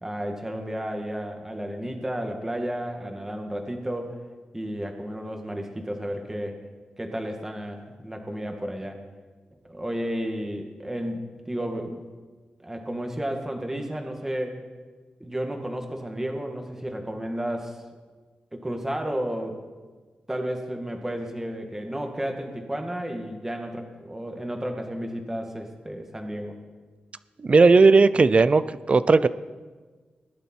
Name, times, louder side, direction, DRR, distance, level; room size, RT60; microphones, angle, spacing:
voice 1, 0.0-4.2 4.5-6.6 7.0-9.0 9.7-11.2 11.5-12.0 12.6-14.6 15.2-17.8 18.5-19.6 20.3-26.6, equal, 10° right, 3 dB, 1.9 m, -32 dB
voice 2, 27.4-28.6 28.9-29.3, right 4 dB, 40° right, 15 dB, 0.5 m, -16 dB
19.5 x 11.5 x 4.5 m, 1.4 s
wide cardioid pair, 110°, 3 cm